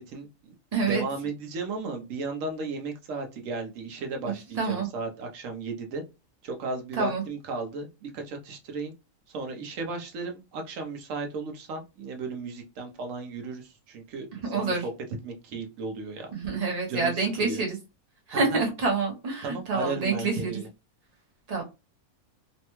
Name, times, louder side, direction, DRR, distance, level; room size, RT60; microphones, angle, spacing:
voice 1, 0.1-0.5 0.9-6.0 6.4-8.9 9.3-14.3 14.5-14.9 15.2-16.3 16.9-17.6 18.3-18.6 19.4-20.7, right 3 dB, 65° right, 3 dB, 1.0 m, -35 dB
voice 2, 0.7-1.0 4.6-4.9 7.0-7.2 14.4-14.8 16.3-17.8 18.3-20.5 21.5-21.6, right 4 dB, 35° right, -1 dB, 0.8 m, -27 dB
3.2 x 2.1 x 3.0 m, 0.27 s
omnidirectional pair, 1.6 m